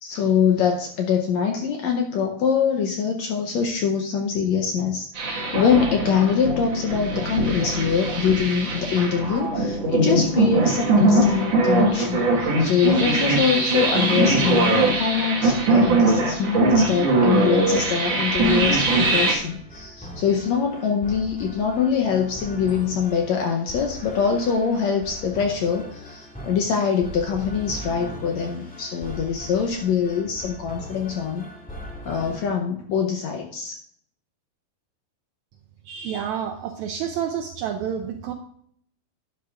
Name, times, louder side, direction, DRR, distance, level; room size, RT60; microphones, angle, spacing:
voice 1, 0.0-5.1 5.5-31.4 32.0-33.8, left 6 dB, 75° left, 3 dB, 1.7 m, -24 dB
sound 1, 5.2-19.3, right 2 dB, 55° right, 2.5 m, -21 dB
sound 2, 17.7-32.4, left 1 dB, 10° left, 0.4 m, -39 dB
voice 2, 35.8-38.3, right 8 dB, 80° right, 5 dB, 1.7 m, -29 dB
11.5 x 9.5 x 2.5 m, 0.66 s
omnidirectional pair, 3.9 m